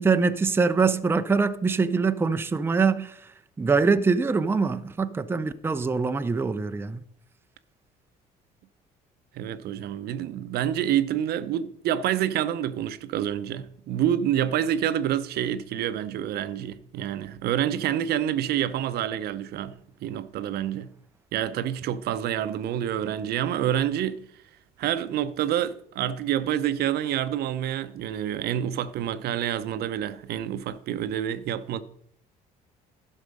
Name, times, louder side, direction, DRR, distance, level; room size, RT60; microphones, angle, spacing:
voice 1, 0.0-7.0, right 4 dB, 15° right, 0.5 m, -24 dB
voice 2, 9.3-19.7 20.0-20.9 21.3-24.2 24.8-31.8, right 10 dB, 70° right, 0.6 m, -27 dB
11.5 x 6.2 x 5.3 m
cardioid pair, 110°, 17 cm